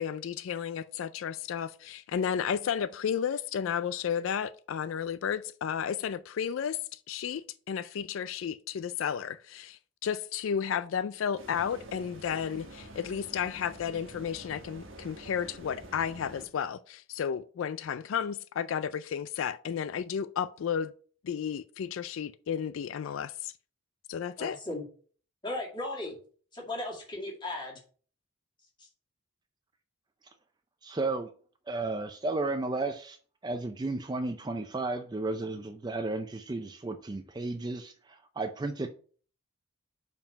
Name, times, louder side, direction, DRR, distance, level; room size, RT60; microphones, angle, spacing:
voice 1, 0.0-20.9 21.2-23.5 24.1-24.6, left 8 dB, 70° left, 0.3 m, -33 dB
sound 1, 11.4-16.5, right 1 dB, 70° right, 1.4 m, -48 dB
voice 2, 24.4-24.8 25.4-26.1 26.5-27.8 28.8-28.9, left 2 dB, 20° left, 2.1 m, -36 dB
voice 3, 30.8-31.3 31.7-33.2 33.4-38.9, right 2 dB, 20° right, 0.4 m, -33 dB
5.4 x 4.7 x 5.7 m
head